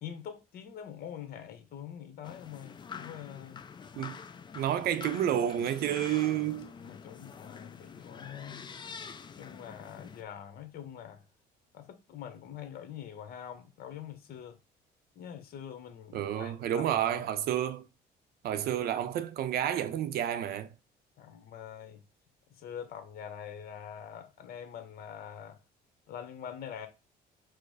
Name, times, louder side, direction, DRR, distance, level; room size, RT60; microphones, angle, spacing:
voice 1, 0.0-3.6 6.8-8.7 9.4-11.2 11.7-14.6 15.2-17.3 21.2-22.0 22.6-25.6 26.1-26.9, left 9 dB, 65° left, 1.0 m, -44 dB
sound 1, 2.2-10.2, left 6 dB, 25° left, 0.4 m, -46 dB
voice 2, 4.5-6.7 16.1-17.9 18.4-20.7, right 10 dB, 65° right, 0.6 m, -30 dB
4.7 x 2.1 x 4.7 m
cardioid pair, 110°, 17 cm